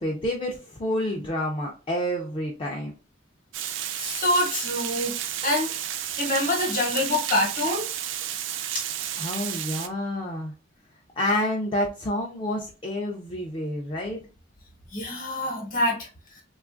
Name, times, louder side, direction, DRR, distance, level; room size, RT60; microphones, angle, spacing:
voice 1, 0.0-2.9 8.7-8.9 9.2-10.5 11.2-14.2, left 1 dB, 25° left, -1 dB, 0.3 m, -29 dB
Water, 3.5-9.9, right 10 dB, 65° right, 0.3 m, -32 dB
voice 2, 4.0-5.1 5.4-5.7 6.2-7.9 14.9-16.4, left 1 dB, 40° left, 1 dB, 0.8 m, -26 dB
3.0 x 2.3 x 2.4 m, 0.34 s
head